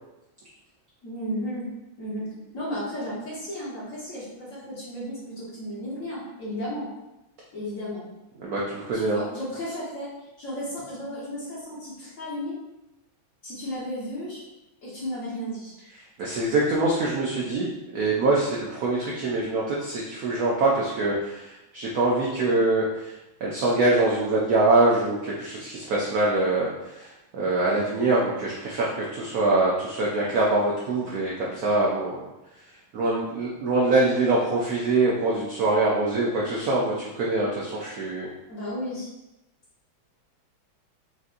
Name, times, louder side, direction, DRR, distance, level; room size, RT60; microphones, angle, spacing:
voice 1, 1.0-1.7 2.0-2.3 2.5-6.9 7.5-8.1 8.9-10.1 10.4-12.6 13.4-14.4 14.8-15.7 38.5-39.1, equal, 45° left, -8 dB, 1.4 m, -34 dB
voice 2, 8.4-9.2 16.2-23.1 23.4-32.3 32.9-38.3, right 2 dB, 85° right, -5 dB, 0.8 m, -24 dB
5.6 x 2.5 x 2.5 m, 0.97 s
omnidirectional pair, 2.3 m